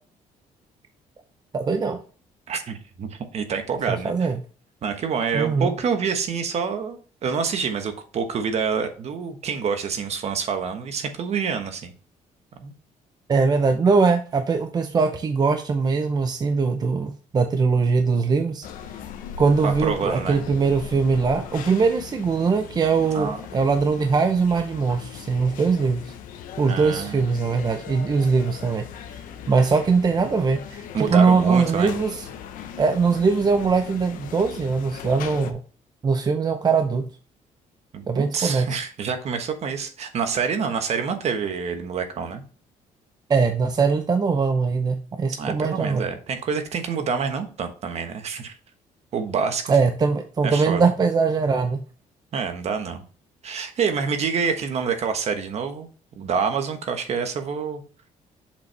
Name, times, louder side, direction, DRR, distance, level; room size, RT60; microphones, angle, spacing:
voice 1, 1.5-2.0 3.9-4.4 5.3-5.7 13.3-18.6 19.4-26.1 26.6-29.2 29.5-32.3 32.8-35.6 36.0-37.1 38.1-38.8 43.3-46.1 49.7-51.8, right 4 dB, 30° right, 6 dB, 0.6 m, -21 dB
voice 2, 2.5-4.3 4.8-11.9 12.6-12.7 19.6-20.4 23.1-23.4 26.7-27.2 30.9-31.9 37.9-42.4 45.4-48.5 49.1-49.8 50.4-50.9 52.3-53.0 53.4-55.9 56.2-57.8, right 6 dB, 55° right, 7 dB, 1.2 m, -27 dB
sound 1, 18.6-35.5, left 8 dB, 90° left, 0.9 m, -39 dB
6.8 x 5.5 x 3.3 m, 0.39 s
cardioid pair, 125°, 14 cm